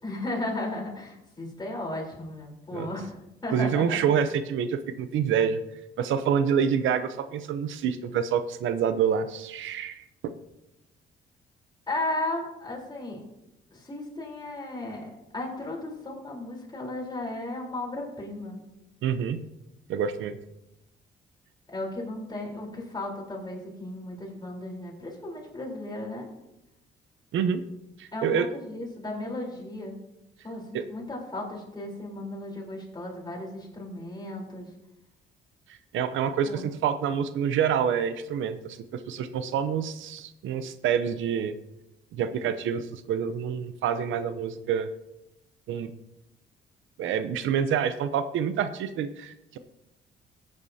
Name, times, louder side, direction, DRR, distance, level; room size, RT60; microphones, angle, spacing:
voice 1, 0.0-3.1 3.4-4.0 11.9-13.2 13.7-18.6 21.7-26.3 28.1-30.0 30.4-34.7 36.4-36.7, left 2 dB, 20° left, -2 dB, 3.7 m, -35 dB
voice 2, 3.5-5.6 6.0-10.3 19.0-19.4 19.9-20.4 27.3-27.6 28.0-28.5 30.7-30.8 35.9-41.5 42.1-44.9 45.7-45.9 47.0-49.6, right 8 dB, 80° right, 11 dB, 0.7 m, -27 dB
15.5 x 8.8 x 2.7 m, 0.90 s
cardioid pair, 90°, 20 cm